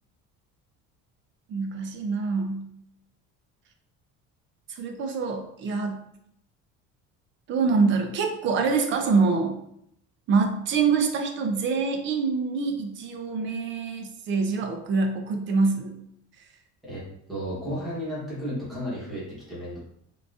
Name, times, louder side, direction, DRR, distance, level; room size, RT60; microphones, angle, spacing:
voice 1, 1.5-2.7 4.7-6.0 7.5-9.6 10.3-16.0, right 4 dB, 40° right, 5 dB, 0.4 m, -25 dB
voice 2, 17.3-19.8, equal, ahead, -8 dB, 1.0 m, -33 dB
3.7 x 2.3 x 2.4 m, 0.72 s
cardioid pair, 175°, 30 cm